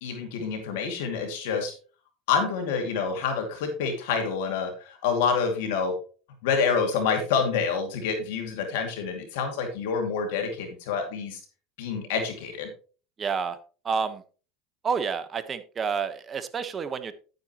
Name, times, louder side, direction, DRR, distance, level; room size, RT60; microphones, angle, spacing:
voice 1, 0.0-1.7 2.3-5.9 6.4-11.4 11.8-12.7, left 5 dB, 80° left, 4 dB, 2.5 m, -27 dB
voice 2, 13.2-13.6 13.8-14.2 14.8-17.1, right 6 dB, 30° right, 11 dB, 1.2 m, -29 dB
10.5 x 9.1 x 3.0 m, 0.37 s
supercardioid pair, 100°, 0 cm